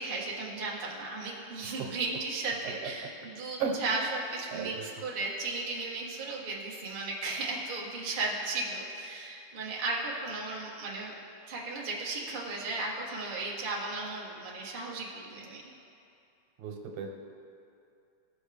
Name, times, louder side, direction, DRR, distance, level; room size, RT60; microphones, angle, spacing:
voice 1, 0.0-11.1 11.5-15.6, right 3 dB, 40° right, -4 dB, 0.6 m, -35 dB
voice 2, 4.5-4.9 16.6-17.2, right 5 dB, 85° right, 2 dB, 2.4 m, -34 dB
17.0 x 6.3 x 3.4 m, 2.6 s
omnidirectional pair, 3.4 m